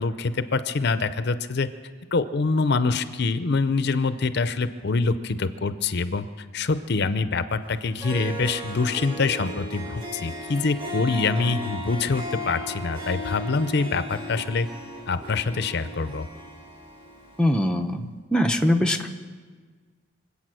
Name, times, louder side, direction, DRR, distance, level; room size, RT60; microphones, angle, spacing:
voice 1, 0.0-1.7 2.1-6.3 6.5-14.7 15.1-16.3, left 4 dB, 50° left, 12 dB, 0.6 m, -25 dB
Harp, 7.7-7.8 8.0-17.5, equal, 25° right, 1.7 m, -36 dB
voice 2, 17.4-18.1 18.3-19.1, left 1 dB, 5° left, 2 dB, 0.6 m, -22 dB
25.5 x 8.5 x 6.2 m, 1.5 s
head